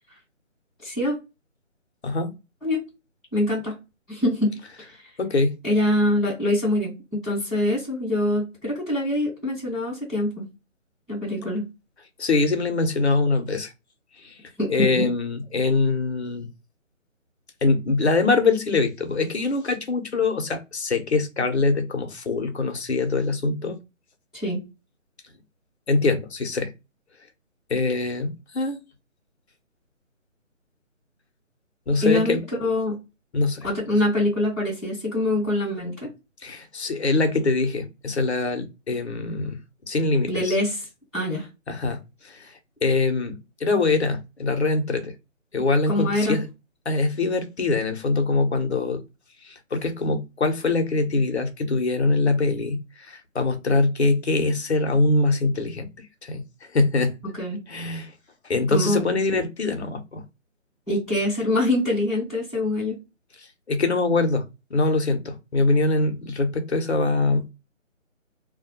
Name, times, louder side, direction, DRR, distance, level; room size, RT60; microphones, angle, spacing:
voice 1, 0.8-1.1 2.6-2.8 3.3-3.7 4.1-4.5 4.8-4.9 5.6-6.9 7.2-10.4 11.1-11.6 14.6-15.1 24.3-24.6 32.0-33.0 33.6-36.1 40.3-40.9 41.1-41.5 45.9-46.4 57.3-57.6 58.7-59.0 60.9-63.0, left 1 dB, ahead, 0.8 m, -24 dB
voice 2, 5.2-5.6 12.2-13.7 14.2-14.4 14.7-16.5 17.6-23.8 25.9-26.7 27.7-28.8 31.9-32.4 33.3-33.7 36.4-39.6 39.9-40.6 41.7-45.1 45.5-46.5 46.9-49.0 49.4-57.1 57.7-58.1 58.4-60.2 63.4-67.5, left 3 dB, 55° left, 0.7 m, -23 dB
2.3 x 2.1 x 2.8 m
hypercardioid pair, 180°, 39 cm